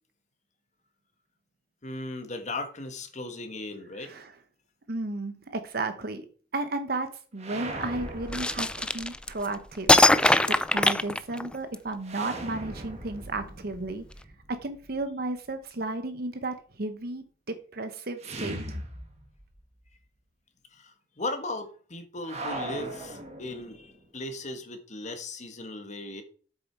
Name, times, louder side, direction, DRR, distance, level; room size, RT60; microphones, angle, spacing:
voice 1, 1.8-4.1 20.8-26.2, left 2 dB, 40° left, 1.6 m, -37 dB
voice 2, 3.9-4.3 4.9-6.3 6.5-7.1 7.3-10.0 10.5-14.0 14.5-18.8, right 2 dB, 60° right, 1.0 m, -33 dB
sound 1, 7.4-9.4 12.0-15.0 18.2-19.6 19.9-20.0 22.2-24.0, right 1 dB, 40° right, 1.7 m, -39 dB
sound 2, 8.3-9.5 9.9-11.8, left 1 dB, 5° left, 0.4 m, -21 dB
8.1 x 6.9 x 4.6 m
head